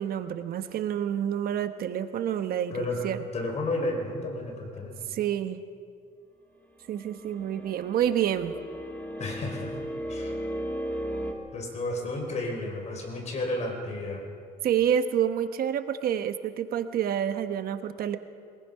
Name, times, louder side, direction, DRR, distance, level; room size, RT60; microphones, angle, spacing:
voice 1, 0.0-3.2 5.1-5.6 6.9-8.5 14.6-18.2, right 9 dB, 60° right, 9 dB, 1.1 m, -28 dB
voice 2, 2.7-3.0 3.3-5.1 9.2-9.7 10.1-10.3 11.5-14.3, left 2 dB, 40° left, 2 dB, 5.4 m, -32 dB
sound 1, 6.8-11.3, equal, 10° left, 2.4 m, -36 dB
23.0 x 20.5 x 5.7 m, 2.2 s
cardioid pair, 110°, 17 cm